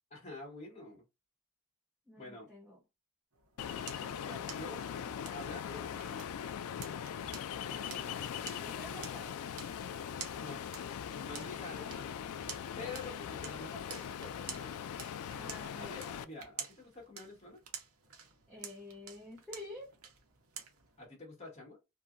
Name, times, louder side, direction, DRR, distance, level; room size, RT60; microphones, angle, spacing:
voice 1, 0.1-1.0 2.2-2.5 4.5-4.8 5.3-6.3 8.3-9.1 10.4-10.7 11.1-12.2 12.8-14.8 15.8-17.6 21.0-21.8, left 2 dB, 30° left, 1.4 m, -48 dB
voice 2, 2.1-2.8 4.0-4.5 7.3-9.3 12.8-13.0 15.3-16.0 18.5-19.9, left 1 dB, ahead, 0.8 m, -50 dB
sound 1, 3.3-21.0, right 7 dB, 65° right, 0.8 m, -51 dB
Ocean, 3.6-16.2, left 8 dB, 80° left, 0.3 m, -41 dB
2.8 x 2.5 x 2.5 m
head